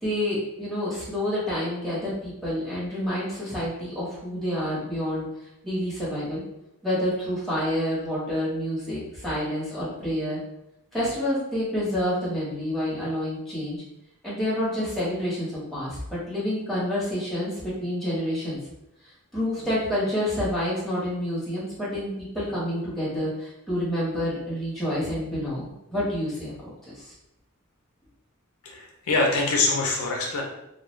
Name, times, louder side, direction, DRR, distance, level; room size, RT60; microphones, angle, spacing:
voice 1, 0.0-5.2 5.6-6.4 6.8-10.4 10.9-13.8 14.2-18.6 19.3-26.7, equal, ahead, -9 dB, 1.0 m, -28 dB
voice 2, 28.6-30.4, left 3 dB, 75° left, 0 dB, 0.5 m, -24 dB
2.3 x 2.2 x 3.1 m, 0.84 s
head